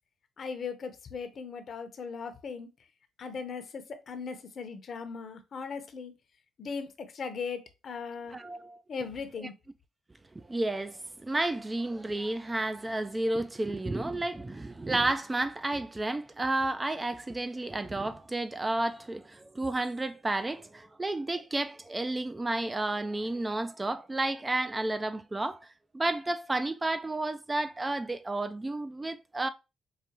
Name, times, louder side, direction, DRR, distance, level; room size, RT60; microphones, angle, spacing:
voice 1, 0.4-2.7 3.2-6.1 6.6-8.4 8.9-9.5, left 5 dB, 55° left, 0.7 m, -38 dB
voice 2, 8.3-8.8 9.4-9.5 10.5-25.6 25.9-29.5, right 2 dB, 20° right, 0.3 m, -31 dB
4.8 x 2.4 x 2.8 m
cardioid pair, 90°, 0 cm